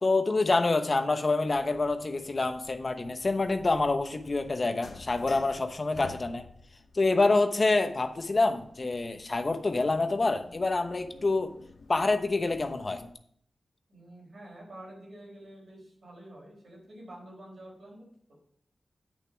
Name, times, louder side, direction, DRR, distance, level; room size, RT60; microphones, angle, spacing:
voice 1, 0.0-6.5 6.9-11.5 11.9-13.0, left 3 dB, 50° left, 8 dB, 0.9 m, -27 dB
sound 1, 1.5-13.1, left 4 dB, 80° left, 0.9 m, -51 dB
voice 2, 13.9-18.1, right 1 dB, 75° right, -3 dB, 4.3 m, -48 dB
8.4 x 6.7 x 4.6 m, 0.63 s
cardioid pair, 45°, 0 cm